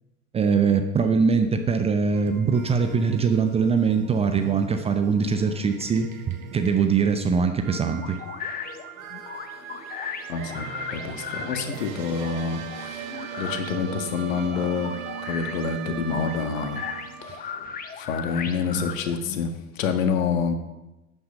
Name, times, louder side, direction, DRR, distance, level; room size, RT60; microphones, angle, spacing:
voice 1, 0.3-8.2, right 5 dB, 15° right, 7 dB, 0.6 m, -22 dB
sound 1, 2.1-17.5, right 8 dB, 60° right, 1.9 m, -39 dB
sound 2, 8.0-19.5, left 7 dB, 20° left, 1.0 m, -37 dB
voice 2, 10.3-14.9 15.2-16.8 17.2-17.6 18.0-20.5, left 6 dB, 55° left, 7 dB, 1.7 m, -28 dB
11.5 x 9.5 x 5.3 m, 1.0 s
figure-of-eight pair, 90°, 45 cm